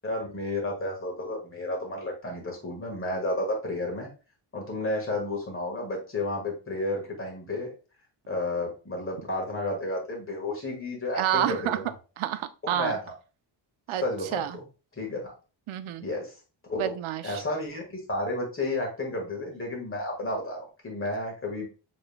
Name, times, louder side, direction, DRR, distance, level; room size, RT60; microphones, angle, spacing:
voice 1, 0.0-4.1 4.5-7.7 8.3-11.9 12.6-13.1 14.0-14.4 15.0-15.3 16.0-16.4 16.7-16.9 17.2-21.7, left 2 dB, 25° left, 0 dB, 1.6 m, -32 dB
voice 2, 11.1-11.8 12.2-13.0 13.9-14.0 14.3-14.6 15.7-16.0 16.8-17.4, right 12 dB, 75° right, 12 dB, 0.6 m, -29 dB
5.3 x 3.5 x 2.2 m, 0.34 s
wide cardioid pair, 145°, 49 cm